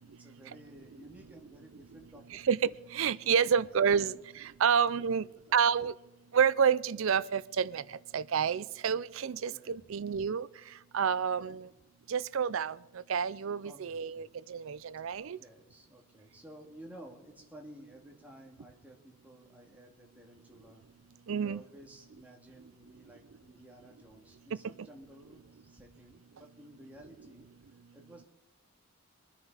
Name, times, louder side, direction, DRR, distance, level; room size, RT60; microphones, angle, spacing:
voice 1, 0.1-2.4 3.3-4.2 5.1-5.6 9.3-10.1 11.2-11.6 13.6-14.3 15.1-20.8 21.4-27.5 27.9-28.3, right 1 dB, 5° right, 2.1 m, -54 dB
voice 2, 2.9-4.1 4.4-5.2 5.5-5.9 6.3-7.8 8.1-10.5 10.9-11.7 12.1-12.8 13.1-15.4 21.3-21.6, right 7 dB, 65° right, 0.4 m, -29 dB
23.5 x 9.9 x 4.8 m
head